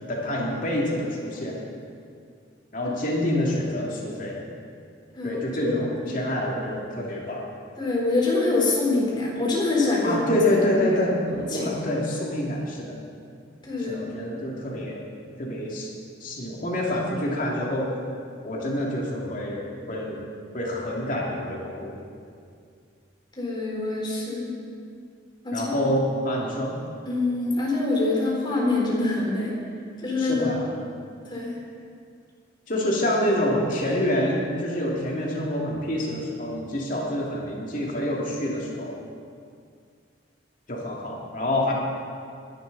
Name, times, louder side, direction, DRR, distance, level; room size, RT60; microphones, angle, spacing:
voice 1, 0.1-1.6 2.7-4.4 5.2-7.4 10.0-11.1 11.5-13.0 13.8-15.0 15.4-15.9 16.2-17.9 18.4-20.2 20.5-22.0 25.5-26.7 30.2-30.6 32.7-38.9 40.7-41.7, left 1 dB, 50° left, -3 dB, 2.7 m, -27 dB
voice 2, 5.7-6.1 7.8-10.4 10.7-10.8 11.3-12.0 13.6-14.0 23.4-24.5 25.4-25.9 27.1-29.5 30.0-30.4 30.7-30.9 31.3-31.6, left 2 dB, 25° left, -4 dB, 4.2 m, -25 dB
22.5 x 11.0 x 4.1 m, 2.3 s
head